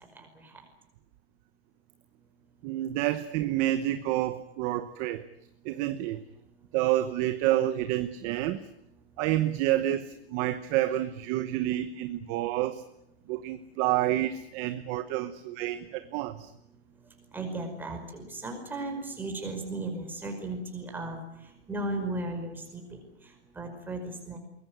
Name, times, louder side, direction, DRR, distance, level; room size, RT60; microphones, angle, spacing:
voice 1, 2.6-5.2 5.6-6.2 6.7-8.6 9.2-12.8 13.3-16.5, right 14 dB, 25° right, 12 dB, 0.9 m, -29 dB
voice 2, 17.3-21.2 21.7-23.0 23.6-24.4, right 2 dB, 5° right, 4 dB, 5.2 m, -35 dB
23.5 x 21.0 x 9.1 m, 0.80 s
hypercardioid pair, 160°, 32 cm